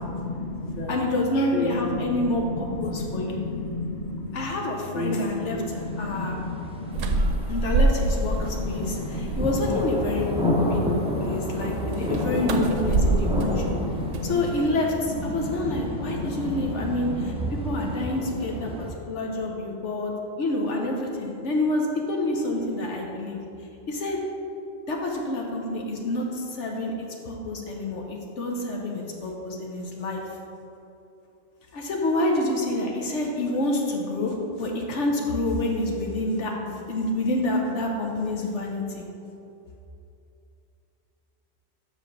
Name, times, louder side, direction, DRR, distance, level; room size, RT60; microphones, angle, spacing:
voice 1, 0.0-1.0 1.3-4.4 4.9-7.3 8.3-9.4 9.7-9.8 10.1-11.7 12.0-14.6 15.1-17.3, left 2 dB, 45° left, 0 dB, 0.9 m, -33 dB
voice 2, 0.9-3.4 4.3-6.4 7.5-10.3 10.7-10.8 11.2-13.7 14.2-17.3 17.6-18.7 19.1-20.1 20.4-23.4 23.9-24.2 24.9-26.9 27.2-30.2 31.7-39.1, left 2 dB, 65° left, 0 dB, 1.1 m, -28 dB
sound 1, 5.7-18.9, equal, 10° right, 0.4 m, -31 dB
sound 2, 6.9-8.5 8.9-9.7 11.9-14.8, right 3 dB, 80° right, 1.0 m, -26 dB
5.9 x 5.2 x 6.3 m, 2.7 s
omnidirectional pair, 1.4 m